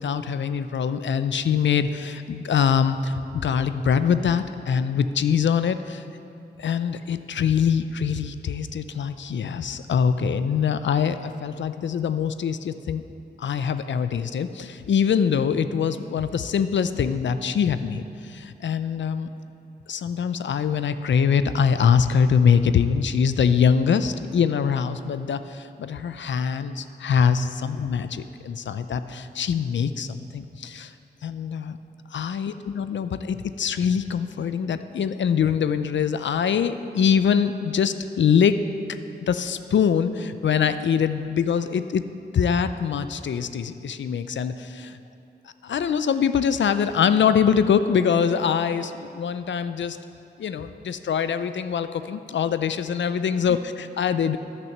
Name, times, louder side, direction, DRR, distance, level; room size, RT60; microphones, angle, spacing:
voice 1, 0.0-6.0 6.6-13.0 13.4-19.3 19.9-30.9 31.2-31.8 32.1-38.6 39.2-42.0 42.3-45.0 45.6-50.0 50.4-54.4, left 7 dB, 85° left, 11 dB, 0.4 m, -23 dB
11.0 x 6.0 x 6.6 m, 2.6 s
wide cardioid pair, 80°, 19 cm